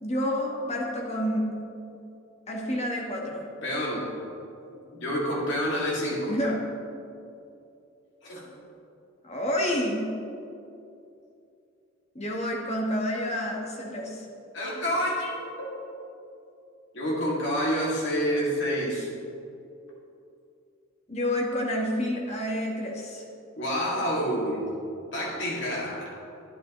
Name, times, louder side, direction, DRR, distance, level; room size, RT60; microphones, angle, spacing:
voice 1, 0.0-1.5 2.5-3.5 6.3-6.6 9.2-10.1 12.1-14.2 21.1-23.2, equal, 35° left, -1 dB, 1.2 m, -29 dB
voice 2, 3.6-4.1 4.9-6.4 8.2-8.5 14.5-15.8 16.9-19.1 23.6-24.7 25.1-26.1, equal, 60° left, -4 dB, 2.1 m, -28 dB
9.8 x 9.1 x 3.0 m, 2.6 s
head